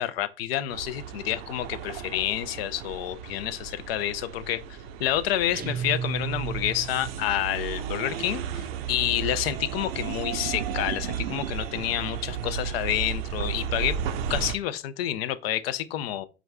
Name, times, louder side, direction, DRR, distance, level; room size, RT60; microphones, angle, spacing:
voice 1, 0.0-4.6 5.0-13.9 14.3-16.3, left 12 dB, 85° left, 0.5 m, -29 dB
sound 1, 0.7-14.6, right 8 dB, 85° right, 0.5 m, -34 dB
sound 2, 5.5-7.2, right 7 dB, 30° right, 0.5 m, -33 dB
5.0 x 2.4 x 3.2 m
hypercardioid pair, 65°, 29 cm